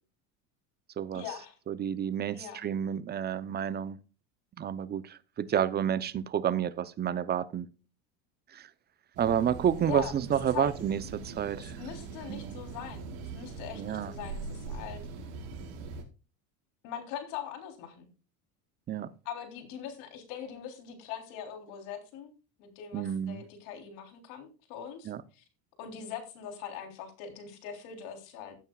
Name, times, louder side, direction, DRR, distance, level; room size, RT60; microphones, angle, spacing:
voice 1, 1.1-1.6 2.3-2.7 9.8-10.1 10.5-10.7 11.6-15.0 16.8-18.1 19.3-22.3 22.6-25.4 25.8-28.6, left 8 dB, 70° left, 3.6 m, -42 dB
voice 2, 1.7-4.0 4.6-7.7 8.5-8.7 9.2-11.7 12.3-12.7 13.7-14.1 18.9-19.1 22.9-23.4 25.0-25.2, right 9 dB, 25° right, 0.6 m, -30 dB
sound 1, 9.1-16.0, right 4 dB, 75° right, 4.3 m, -42 dB
15.5 x 8.8 x 2.3 m
supercardioid pair, 130°, 42 cm